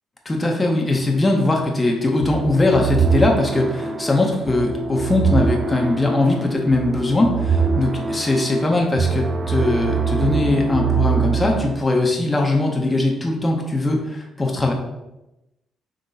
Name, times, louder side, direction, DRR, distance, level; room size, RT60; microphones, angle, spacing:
voice 1, 0.3-14.7, left 2 dB, 20° left, 0 dB, 0.6 m, -20 dB
sound 1, 2.2-11.7, right 5 dB, 50° right, 0.4 m, -23 dB
3.9 x 2.9 x 3.9 m, 0.95 s
cardioid pair, 90°, 0 cm